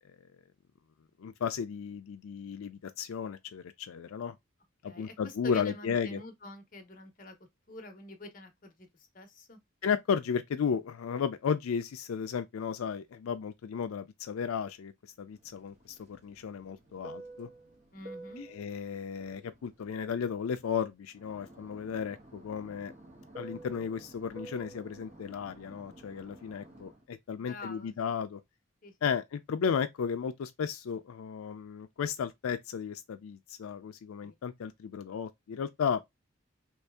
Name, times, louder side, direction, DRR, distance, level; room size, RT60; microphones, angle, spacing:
voice 1, 1.2-4.4 4.8-6.2 9.8-14.9 15.2-17.5 18.5-22.9 23.4-28.4 29.0-36.0, left 6 dB, 85° left, 0.4 m, -34 dB
voice 2, 4.9-7.4 7.7-8.9 9.1-9.6 17.9-18.5 27.4-28.1 28.8-28.9 34.2-34.3, left 2 dB, 40° left, 0.8 m, -46 dB
Fixed-wing aircraft airplane, 15.4-20.8 21.2-27.0, right 2 dB, 35° right, 1.1 m, -50 dB
3.1 x 2.7 x 3.4 m
head